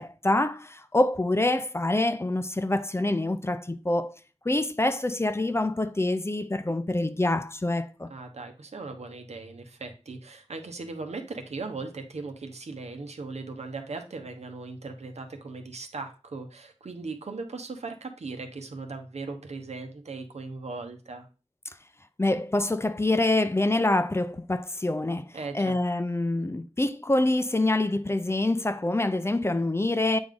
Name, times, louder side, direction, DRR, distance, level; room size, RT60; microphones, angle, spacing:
voice 1, 0.0-4.1 4.4-8.1 22.2-30.2, left 2 dB, 25° left, 0.6 m, -26 dB
voice 2, 8.0-21.3 25.3-25.8, right 3 dB, 80° right, 1.0 m, -38 dB
8.0 x 3.7 x 3.7 m
wide cardioid pair, 55°, 11 cm